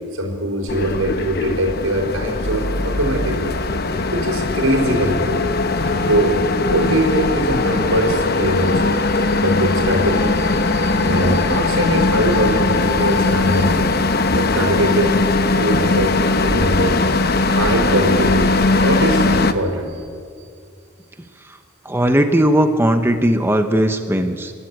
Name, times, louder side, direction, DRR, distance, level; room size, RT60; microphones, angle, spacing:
voice 1, 0.1-3.6 4.1-5.4 5.8-6.4 6.6-14.0 14.3-15.2 15.6-17.1 17.5-20.0, right 1 dB, 80° right, 3 dB, 4.5 m, -22 dB
sound 1, 0.7-19.5, left 3 dB, 50° left, 0.9 m, -19 dB
voice 2, 21.8-24.5, right 1 dB, 10° right, 7 dB, 0.9 m, -17 dB
25.0 x 12.5 x 9.5 m, 2.2 s
head